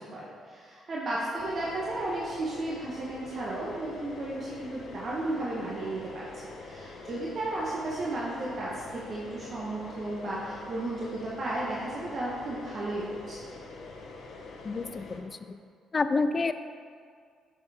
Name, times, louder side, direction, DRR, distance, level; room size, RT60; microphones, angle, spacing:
voice 1, 0.0-13.4, right 2 dB, 50° right, -6 dB, 1.1 m, -34 dB
sound 1, 1.4-15.2, left 3 dB, 70° left, 0.9 m, -45 dB
voice 2, 14.6-15.6 15.9-16.5, left 3 dB, 35° left, 11 dB, 0.3 m, -29 dB
6.7 x 6.4 x 3.5 m, 2.1 s
cardioid pair, 90°, 0 cm